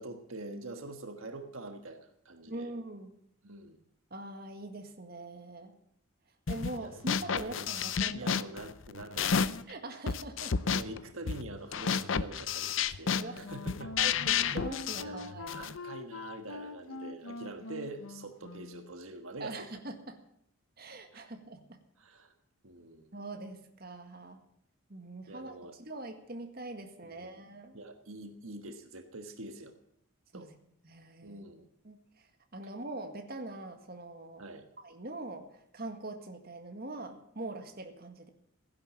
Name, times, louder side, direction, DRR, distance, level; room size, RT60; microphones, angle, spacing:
voice 1, 0.0-2.7 3.4-3.8 6.8-7.0 7.3-9.5 10.6-14.1 14.4-14.6 15.0-19.7 22.0-22.3 22.6-23.1 25.3-25.7 27.0-27.4 27.7-29.7 30.3-30.5 31.2-31.7 34.4-34.7, right 2 dB, 75° right, 6 dB, 1.5 m, -45 dB
voice 2, 2.5-3.1 4.1-5.7 6.5-8.4 9.7-10.6 12.9-13.5 14.0-15.7 19.4-20.2 20.8-21.8 23.1-24.4 24.9-27.8 30.3-30.6 30.8-31.4 31.8-34.4 34.8-38.3, right 2 dB, 45° right, 5 dB, 1.8 m, -43 dB
sound 1, 6.5-6.8 7.1-9.7 10.1-15.8, left 6 dB, 65° left, 0.6 m, -31 dB
Wind instrument woodwind instrument, 13.1-19.0, left 3 dB, 90° left, 0.9 m, -44 dB
15.5 x 11.0 x 7.5 m, 0.74 s
head